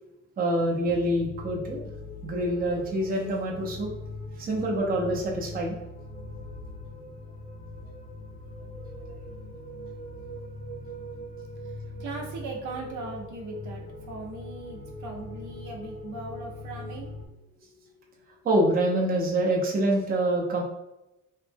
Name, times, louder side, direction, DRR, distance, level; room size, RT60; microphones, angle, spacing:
voice 1, 0.4-1.9 2.2-3.9 4.4-5.8 18.4-20.6, right 1 dB, 30° right, -1 dB, 0.6 m, -26 dB
sound 1, 0.9-17.3, left 1 dB, 25° left, 0.5 m, -41 dB
voice 2, 11.6-17.1, right 3 dB, 80° right, 0 dB, 0.7 m, -39 dB
3.1 x 2.1 x 3.3 m, 0.95 s
cardioid pair, 145°, 29 cm